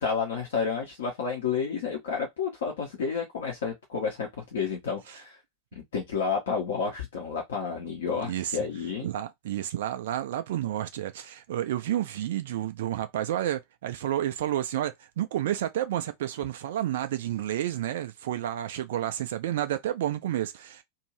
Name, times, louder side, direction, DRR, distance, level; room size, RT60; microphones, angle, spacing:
voice 1, 0.0-5.4 5.7-9.1, left 6 dB, 60° left, 1.0 m, -30 dB
voice 2, 8.1-8.6 9.0-20.8, right 12 dB, 55° right, 0.4 m, -30 dB
2.6 x 2.6 x 3.1 m
figure-of-eight pair, 90°, 0 cm